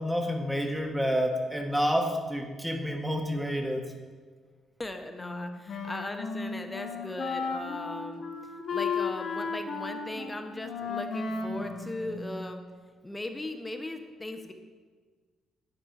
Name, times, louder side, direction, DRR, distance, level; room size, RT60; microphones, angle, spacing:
voice 1, 0.0-3.9 11.5-12.2, equal, 5° right, 3 dB, 1.1 m, -29 dB
voice 2, 4.8-8.2 8.7-12.6 13.0-14.5, left 1 dB, 15° left, 6 dB, 0.8 m, -38 dB
Wind instrument woodwind instrument, 5.2-12.7, left 5 dB, 55° left, 0.9 m, -35 dB
9.6 x 4.4 x 5.4 m, 1.5 s
cardioid pair, 90°, 0 cm